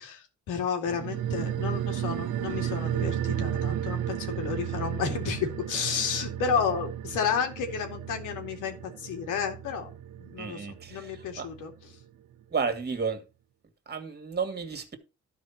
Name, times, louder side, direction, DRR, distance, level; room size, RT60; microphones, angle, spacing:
voice 1, 0.0-9.9 10.2-11.9, left 6 dB, 90° left, 2.8 m, -32 dB
sound 1, 0.9-11.7 12.0-12.1, right 10 dB, 85° right, 1.1 m, -33 dB
voice 2, 10.4-11.1 11.4-11.5 12.5-13.2 13.9-14.9, right 5 dB, 35° right, 2.4 m, -32 dB
12.0 x 5.0 x 6.0 m
cardioid pair, 90°, 30 cm